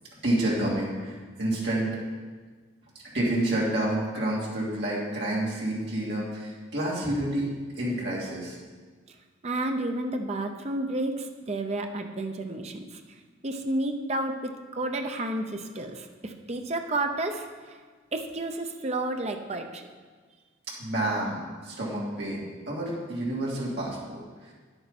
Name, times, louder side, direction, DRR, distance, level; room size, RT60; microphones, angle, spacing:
voice 1, 0.2-1.9 3.1-7.5 7.8-8.6 20.8-24.5, right 1 dB, 60° right, -6 dB, 2.9 m, -29 dB
voice 2, 9.4-13.0 13.4-17.8 18.1-19.9, right 2 dB, 35° right, 5 dB, 0.7 m, -31 dB
10.0 x 9.0 x 4.2 m, 1.5 s
head